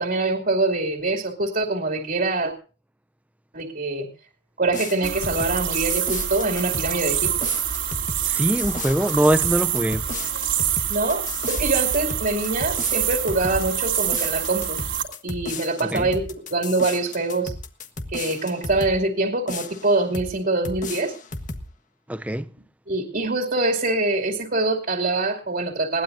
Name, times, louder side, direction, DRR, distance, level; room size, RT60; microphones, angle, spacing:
voice 1, 0.0-2.5 3.5-4.1 4.6-7.3 10.9-14.8 15.2-17.5 18.1-21.1 22.9-26.0, right 2 dB, 50° right, 2.7 m, -24 dB
sound 1, 4.7-19.0 19.5-20.3 20.6-21.7, left 3 dB, 40° left, 1.5 m, -35 dB
sound 2, 5.0-15.0, right 10 dB, 70° right, 2.9 m, -26 dB
voice 2, 8.2-10.1 15.8-16.1 22.1-22.5, right 1 dB, 5° right, 0.6 m, -22 dB
21.0 x 18.5 x 2.7 m
head